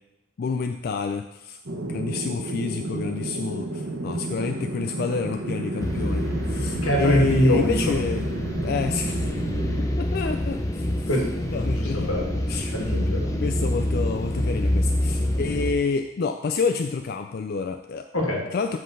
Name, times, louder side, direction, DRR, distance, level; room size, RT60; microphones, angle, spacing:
voice 1, 0.4-8.2 8.6-9.3 10.0-11.1 11.5-12.1 12.5-12.7 13.4-18.1 18.5-18.8, left 5 dB, 50° left, 6 dB, 0.3 m, -28 dB
sound 1, 1.6-9.9, right 2 dB, 55° right, 1.0 m, -32 dB
sound 2, 5.8-15.7, left 1 dB, 15° left, 0.7 m, -26 dB
voice 2, 6.8-7.9 11.1-12.4 12.7-13.3 18.1-18.4, equal, 85° left, -1 dB, 2.1 m, -24 dB
7.6 x 3.8 x 6.6 m, 0.95 s
head